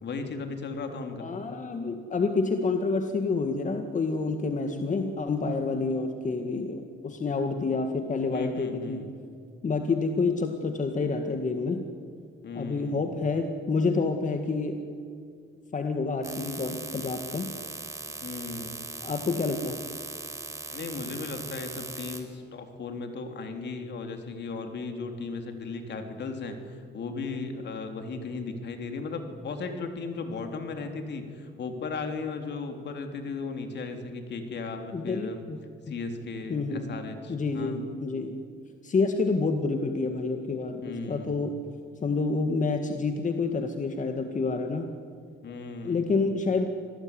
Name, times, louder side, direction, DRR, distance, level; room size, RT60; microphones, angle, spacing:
voice 1, 0.0-1.3 8.3-9.1 12.4-13.1 18.2-18.9 20.7-35.4 35.9-37.8 40.8-41.4 45.4-46.0, left 4 dB, 60° left, 5 dB, 3.5 m, -36 dB
voice 2, 1.2-9.1 9.6-11.8 12.5-14.8 15.7-17.5 19.0-19.8 34.9-35.6 35.9-36.0 36.5-36.9 37.3-38.4 38.8-41.6 42.0-44.9 45.8-46.7, left 4 dB, 40° left, 5 dB, 2.0 m, -28 dB
sound 1, 16.2-22.2, right 2 dB, 15° right, 4.6 m, -39 dB
25.5 x 19.0 x 9.8 m, 2.3 s
cardioid pair, 90°, 20 cm